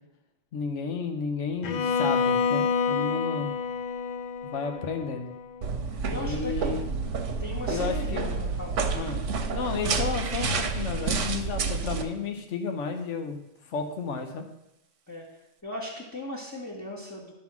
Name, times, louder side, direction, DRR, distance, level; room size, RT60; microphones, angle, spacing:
voice 1, 0.5-3.5 4.4-5.3 6.1-6.9 7.7-8.4 8.9-9.2 9.5-13.4 13.7-14.5, left 5 dB, 80° left, 6 dB, 1.2 m, -32 dB
Bowed string instrument, 1.6-5.6, left 5 dB, 60° left, 0.4 m, -28 dB
sound 1, 5.6-12.0, right 4 dB, 80° right, 1.1 m, -29 dB
voice 2, 6.1-6.8 7.4-9.2 15.1-15.4 15.6-17.3, left 1 dB, 15° left, -4 dB, 1.1 m, -38 dB
11.0 x 3.8 x 6.0 m, 0.88 s
omnidirectional pair, 1.2 m